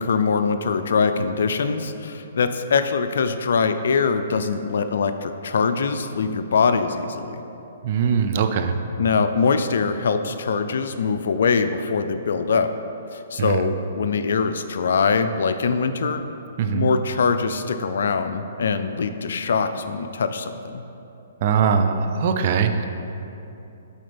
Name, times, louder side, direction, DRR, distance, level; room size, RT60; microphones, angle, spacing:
voice 1, 0.0-7.4 9.0-12.7 13.1-16.2 16.7-20.8, left 5 dB, 70° left, 9 dB, 0.4 m, -23 dB
voice 2, 7.8-8.7 13.4-13.7 16.6-16.9 21.4-22.9, right 6 dB, 50° right, 7 dB, 0.5 m, -21 dB
12.0 x 4.3 x 3.4 m, 2.9 s
hypercardioid pair, 140°, 0 cm